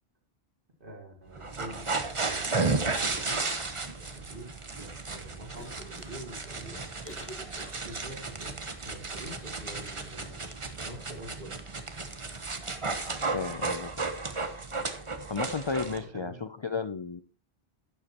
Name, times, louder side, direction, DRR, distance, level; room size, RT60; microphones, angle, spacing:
voice 1, 0.8-3.5 3.9-7.0 7.8-10.5 10.8-11.6 16.0-16.4, right 1 dB, 55° right, 1 dB, 3.1 m, -46 dB
sound 1, 1.3-16.0, right 3 dB, 30° right, 1.0 m, -34 dB
Cough, 5.4-8.2, left 1 dB, 10° left, 1.3 m, -49 dB
voice 2, 13.3-14.1 15.3-17.2, left 5 dB, 45° left, 12 dB, 0.3 m, -33 dB
12.0 x 9.8 x 2.9 m, 0.33 s
omnidirectional pair, 1.1 m